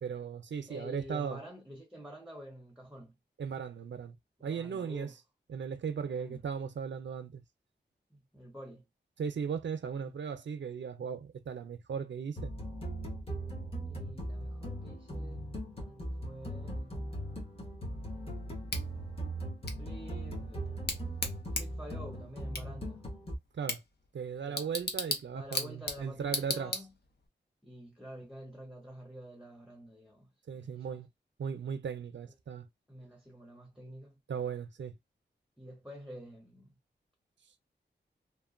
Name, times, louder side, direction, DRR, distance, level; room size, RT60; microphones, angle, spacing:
voice 1, 0.0-1.4 3.4-4.2 4.4-5.1 5.5-7.4 9.2-12.5 23.5-23.8 24.1-26.7 30.5-31.1 31.4-32.7 34.3-35.0, right 7 dB, 75° right, 0.5 m, -37 dB
voice 2, 0.7-3.2 4.4-5.1 6.0-6.5 8.1-8.9 10.0-10.1 13.8-15.5 15.8-17.1 19.8-20.7 21.5-23.0 25.3-26.9 27.6-31.0 32.9-34.2 35.6-36.7, equal, 5° right, 0.7 m, -49 dB
sound 1, 12.4-23.4, right 1 dB, 30° left, 1.1 m, -39 dB
Bicycle / Tick, 18.7-27.3, left 3 dB, 60° left, 0.7 m, -39 dB
2.9 x 2.2 x 2.5 m
wide cardioid pair, 105°, 19 cm